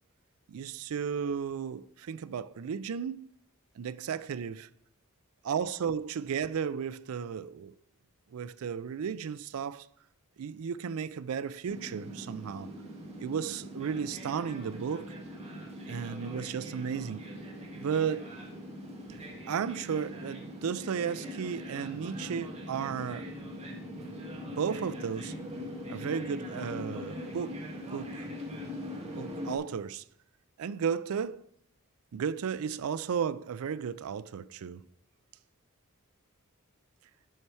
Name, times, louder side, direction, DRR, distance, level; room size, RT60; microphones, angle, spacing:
voice 1, 0.5-3.3 3.8-4.7 5.4-7.7 8.3-9.9 10.4-12.7 13.2-15.1 15.9-17.2 17.7-18.3 19.5-23.3 24.6-25.3 25.9-27.6 27.9-28.1 29.2-30.0 30.6-31.4 32.1-34.8, right 7 dB, 70° right, 0.4 m, -34 dB
sound 1, 11.6-29.6, equal, 30° right, 1.6 m, -41 dB
12.0 x 4.3 x 4.7 m
head